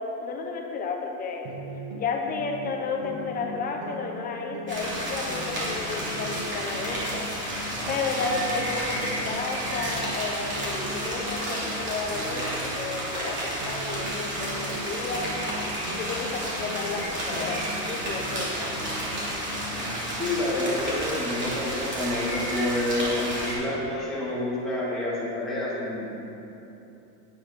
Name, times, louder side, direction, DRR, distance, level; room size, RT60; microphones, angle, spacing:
voice 1, 0.0-1.5 1.9-7.3 7.9-12.4 12.8-15.3 16.0-18.9, left 4 dB, 20° left, 1 dB, 1.0 m, -32 dB
sound 1, 1.5-13.3 13.6-20.1, left 1 dB, 55° right, 1.7 m, -39 dB
sound 2, 4.7-23.5, right 1 dB, 25° right, 2.9 m, -31 dB
voice 2, 20.1-26.2, left 1 dB, ahead, -10 dB, 3.0 m, -28 dB
12.0 x 10.5 x 4.3 m, 2.9 s
supercardioid pair, 160°, 46 cm